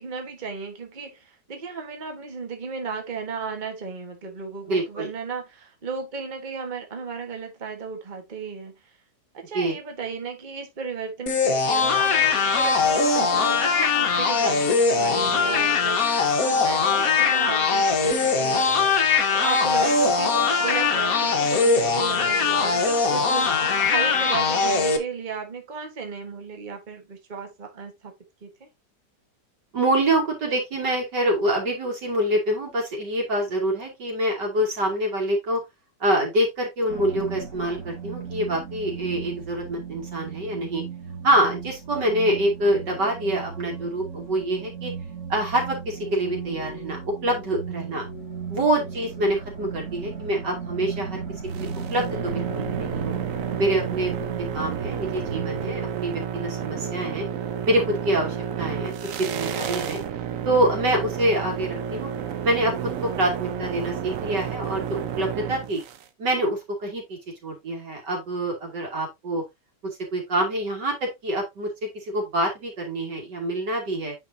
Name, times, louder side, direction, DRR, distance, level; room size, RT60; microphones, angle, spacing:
voice 1, 0.0-8.7 9.3-19.0 19.3-28.1 28.4-28.7, right 5 dB, 30° right, 1.4 m, -35 dB
voice 2, 4.7-5.1 9.5-9.8 29.7-35.6 36.0-40.8 41.2-44.9 45.3-48.0 48.5-51.2 51.5-53.1 53.6-54.1 54.5-57.2 57.6-58.9 59.2-60.0 60.4-62.1 62.4-62.8 63.0-65.8 66.2-69.4 70.1-74.1, right 1 dB, 85° right, 3.2 m, -26 dB
sound 1, 11.3-25.0, left 4 dB, 60° left, 1.5 m, -21 dB
sound 2, 36.9-55.9, right 6 dB, 45° right, 2.6 m, -35 dB
sound 3, 51.5-66.1, right 9 dB, 65° right, 0.9 m, -31 dB
8.4 x 5.3 x 2.7 m
omnidirectional pair, 1.8 m